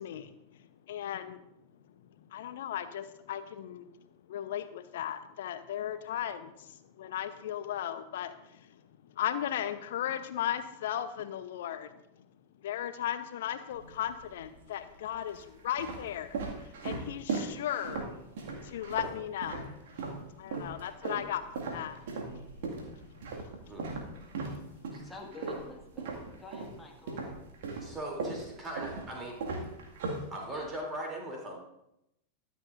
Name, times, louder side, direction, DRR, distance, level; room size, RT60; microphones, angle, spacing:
voice 1, 0.0-1.4 2.2-12.0 12.6-18.1 18.6-19.7 20.0-20.1 20.3-24.8, left 10 dB, 55° left, 11 dB, 0.8 m, -37 dB
sound 1, 13.7-14.4 15.1-20.2 20.5-26.8 27.1-30.8, right 4 dB, 55° right, 2.1 m, -38 dB
voice 2, 24.9-27.2, left 3 dB, 5° left, 0 dB, 1.9 m, -49 dB
voice 3, 27.8-29.4 30.3-31.6, right 1 dB, 20° right, -1 dB, 3.1 m, -39 dB
23.0 x 7.8 x 2.6 m, 0.85 s
figure-of-eight pair, 90°, 0 cm